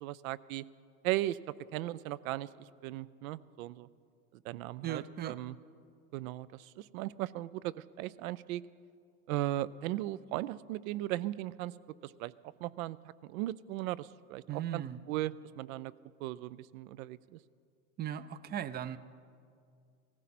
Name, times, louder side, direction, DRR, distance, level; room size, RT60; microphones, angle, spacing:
voice 1, 0.0-0.6 1.0-1.4 1.7-2.5 2.8-3.9 4.4-5.6 6.1-8.6 9.3-11.7 12.0-12.3 12.6-13.0 13.2-14.8 15.1-15.9 16.2-17.4, right 15 dB, 70° right, 19 dB, 0.6 m, -37 dB
voice 2, 4.8-5.4 14.5-15.0 18.0-19.0, right 10 dB, 25° right, 15 dB, 0.5 m, -37 dB
17.5 x 15.5 x 4.3 m, 2.3 s
hypercardioid pair, 95°, 43 cm